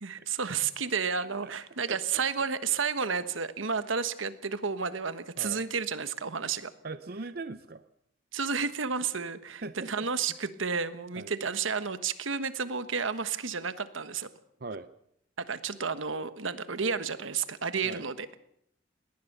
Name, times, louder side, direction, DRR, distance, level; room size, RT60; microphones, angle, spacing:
voice 1, 0.0-6.7 8.3-9.6 9.9-14.3 15.4-18.3, right 5 dB, 85° right, 12 dB, 1.3 m, -31 dB
voice 2, 1.9-2.2 5.4-5.6 6.8-7.8 9.6-10.1 11.1-11.3 14.6-14.9 17.8-18.0, right 3 dB, 50° right, 12 dB, 0.7 m, -40 dB
21.0 x 18.5 x 6.7 m, 0.72 s
head